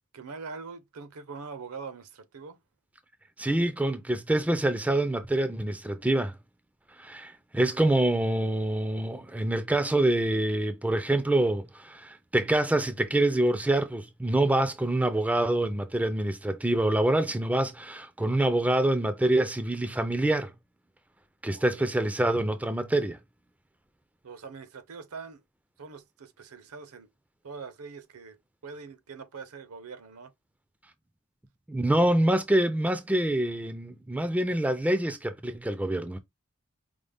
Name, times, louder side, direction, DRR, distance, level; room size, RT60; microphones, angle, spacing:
voice 1, 0.1-2.6 21.5-21.9 24.2-25.4 25.8-27.1 27.4-28.4 28.6-30.3, right 5 dB, 75° right, 0.7 m, -43 dB
voice 2, 3.4-6.4 7.0-20.5 21.4-23.2 31.7-36.2, right 1 dB, 5° right, 0.3 m, -26 dB
5.1 x 2.1 x 3.4 m
head